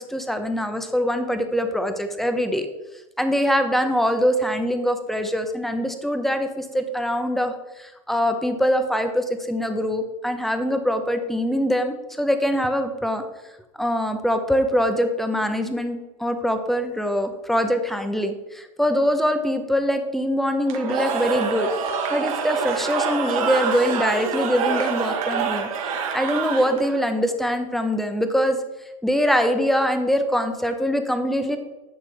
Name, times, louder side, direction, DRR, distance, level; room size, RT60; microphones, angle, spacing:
voice 1, 0.1-2.7 3.2-13.2 13.8-21.7 22.1-25.7 26.1-28.6 29.0-31.6, equal, ahead, 7 dB, 1.0 m, -23 dB
Cheering / Crowd, 20.7-27.0, right 6 dB, 75° right, 1.7 m, -26 dB
10.5 x 6.6 x 3.5 m, 1.1 s
hypercardioid pair, 110°, 18 cm